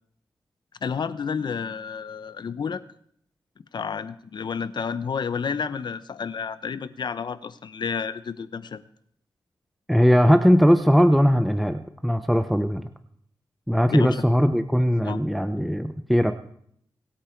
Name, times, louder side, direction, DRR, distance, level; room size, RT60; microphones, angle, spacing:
voice 1, 0.8-2.8 3.7-8.8 13.9-14.2 15.0-15.2, left 6 dB, 60° left, 15 dB, 0.8 m, -30 dB
voice 2, 9.9-12.8 13.7-16.3, equal, ahead, 9 dB, 0.7 m, -19 dB
24.0 x 8.6 x 4.5 m, 0.68 s
wide cardioid pair, 95°, 8 cm